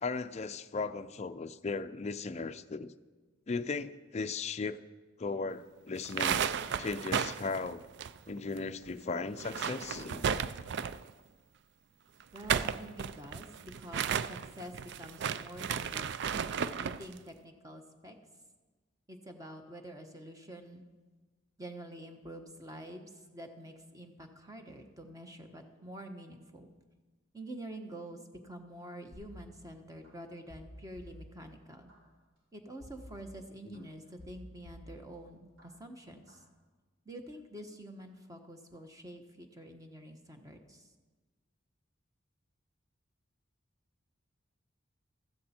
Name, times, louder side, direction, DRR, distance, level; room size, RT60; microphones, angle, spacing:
voice 1, 0.0-2.9 3.5-4.8 5.2-6.4 6.8-7.8 8.3-10.3 33.7-33.9, left 4 dB, 35° left, 10 dB, 0.4 m, -37 dB
sound 1, 6.0-8.6 8.8-8.9 9.3-11.1 12.2-17.0, right 7 dB, 60° right, 0.4 m, -34 dB
voice 2, 12.3-16.1 16.7-18.1 19.1-20.9 21.6-26.7 27.3-28.2 28.4-31.9 32.5-36.4 37.0-40.8, right 1 dB, 15° right, 4 dB, 1.1 m, -47 dB
sound 2, 29.1-30.1 30.5-31.9 32.8-33.8 34.2-35.6 36.0-36.4, equal, 90° right, 5.7 m, -53 dB
15.0 x 13.5 x 4.3 m, 1.3 s
head